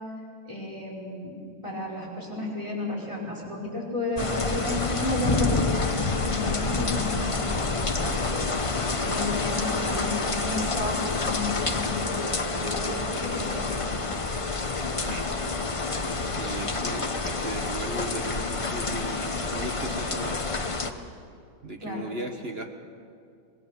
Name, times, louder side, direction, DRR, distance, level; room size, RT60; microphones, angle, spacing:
voice 1, 0.5-1.4 1.6-8.5 9.0-11.0 11.2-14.0 21.8-22.1, left 1 dB, 15° right, -3 dB, 5.3 m, -33 dB
sound 1, 4.2-20.9, left 3 dB, 55° left, 0.3 m, -28 dB
voice 2, 15.9-20.4 21.6-22.7, right 1 dB, 35° right, 4 dB, 1.3 m, -37 dB
26.0 x 19.5 x 6.7 m, 2.4 s
omnidirectional pair, 2.3 m